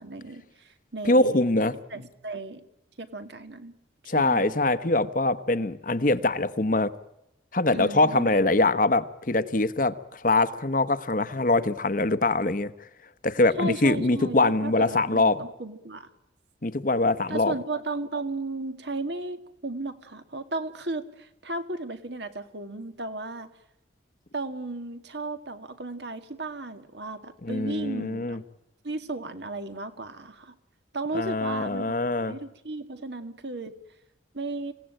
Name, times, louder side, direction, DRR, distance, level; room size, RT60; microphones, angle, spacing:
voice 1, 0.0-1.4 1.9-2.6 3.0-3.7 4.0-4.6 7.7-8.3 13.6-16.1 17.3-23.5 24.3-28.4 28.8-30.6 30.9-33.7 34.3-34.7, right 2 dB, 65° right, 9 dB, 2.0 m, -35 dB
voice 2, 1.0-1.8 4.1-6.9 7.5-12.7 13.2-15.4 16.6-17.5 27.4-28.4 31.1-32.4, left 2 dB, 45° left, 14 dB, 1.0 m, -23 dB
27.0 x 17.0 x 9.0 m, 0.85 s
head